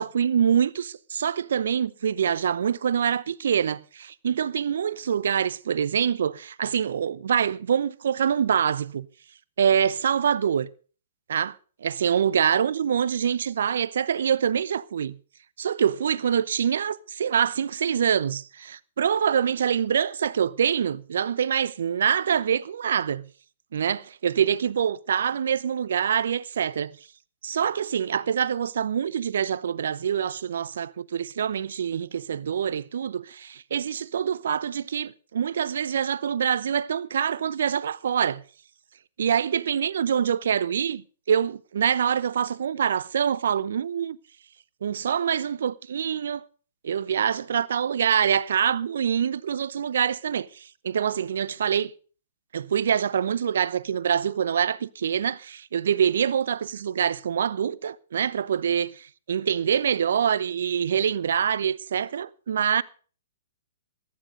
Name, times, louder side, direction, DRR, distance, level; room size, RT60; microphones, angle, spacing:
voice 1, 0.0-9.1 9.6-10.7 11.3-11.5 11.8-15.2 15.6-23.3 23.7-26.9 27.4-38.4 39.2-44.2 44.8-46.4 46.8-51.9 52.5-62.8, right 8 dB, 65° right, 0.7 m, -25 dB
15.0 x 11.5 x 5.2 m
hypercardioid pair, 120°, 0 cm